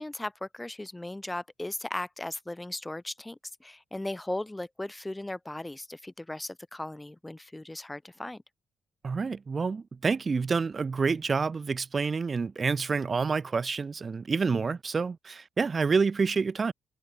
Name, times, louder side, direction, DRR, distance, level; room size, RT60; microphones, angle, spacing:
voice 1, 0.0-8.4, left 1 dB, 10° left, 4.3 m, -37 dB
voice 2, 9.0-16.7, right 5 dB, 25° right, 2.5 m, -28 dB
cardioid pair, 145°, 0 cm